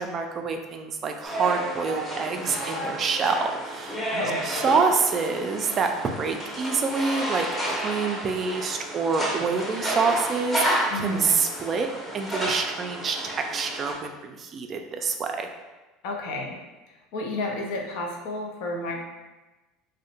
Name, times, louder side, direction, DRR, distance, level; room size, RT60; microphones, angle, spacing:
voice 1, 0.0-4.1 4.4-11.9 12.1-15.5, right 5 dB, 40° right, 5 dB, 0.3 m, -27 dB
sound 1, 1.2-13.9, equal, 10° left, 0.7 m, -31 dB
voice 2, 4.1-4.7 10.9-11.4 16.0-16.6 17.1-19.0, left 2 dB, 70° left, 1 dB, 0.5 m, -32 dB
2.5 x 2.0 x 2.8 m, 1.1 s
hypercardioid pair, 85°, 0 cm